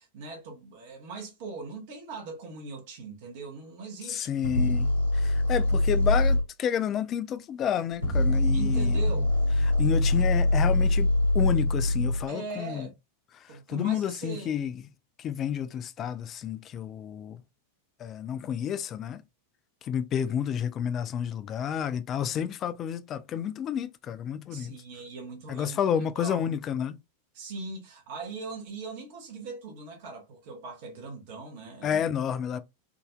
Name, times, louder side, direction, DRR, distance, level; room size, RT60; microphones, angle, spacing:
voice 1, 0.0-4.4 8.5-9.5 12.3-12.9 13.5-14.5 24.5-25.8 26.2-26.5 27.3-32.0, right 4 dB, 50° right, 1.1 m, -40 dB
voice 2, 4.0-9.0 9.8-12.9 13.3-14.7 15.2-17.4 18.0-19.2 19.8-24.7 25.5-27.0 31.8-32.6, left 9 dB, 30° left, 0.3 m, -30 dB
sound 1, 4.4-6.4 7.9-12.3, left 1 dB, 85° right, 1.4 m, -23 dB
3.7 x 2.6 x 2.3 m
figure-of-eight pair, 90°, 0 cm